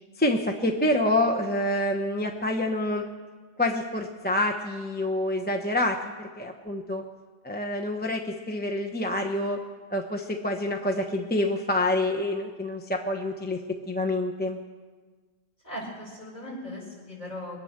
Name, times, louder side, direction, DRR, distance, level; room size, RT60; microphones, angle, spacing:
voice 1, 0.2-3.0 3.6-7.0 7.4-9.6 9.9-13.6 13.9-14.6, left 1 dB, 10° left, 1 dB, 0.8 m, -27 dB
voice 2, 15.6-17.6, left 1 dB, 35° left, -5 dB, 6.0 m, -38 dB
23.5 x 9.2 x 6.6 m, 1.4 s
omnidirectional pair, 1.3 m